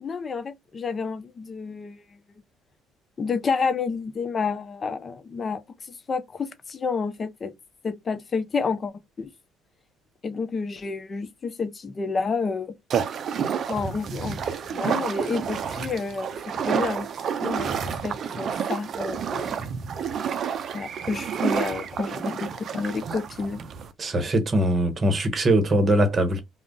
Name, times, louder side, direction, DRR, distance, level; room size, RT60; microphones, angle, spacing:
voice 1, 0.0-2.0 3.2-5.6 6.1-7.5 7.8-8.9 9.2-9.3 10.2-12.7 13.5-17.1 17.4-19.7 20.7-23.6, left 4 dB, 35° left, 0.5 m, -30 dB
sound 1, 12.9-23.9, right 7 dB, 55° right, 0.4 m, -29 dB
voice 2, 24.0-26.4, right 1 dB, 35° right, 0.9 m, -21 dB
2.4 x 2.0 x 3.6 m
supercardioid pair, 80°, 0 cm